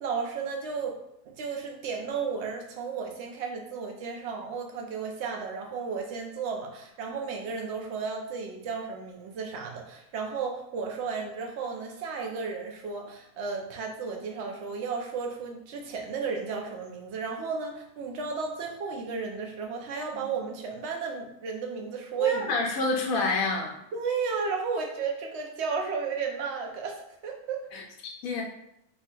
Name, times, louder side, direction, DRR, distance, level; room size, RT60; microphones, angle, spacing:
voice 1, 0.0-1.0 1.2-22.5 23.9-27.6, right 5 dB, 60° right, 2 dB, 0.8 m, -33 dB
voice 2, 22.2-23.8 27.7-28.4, left 3 dB, 75° left, -1 dB, 1.1 m, -29 dB
4.1 x 2.8 x 2.3 m, 0.80 s
omnidirectional pair, 1.5 m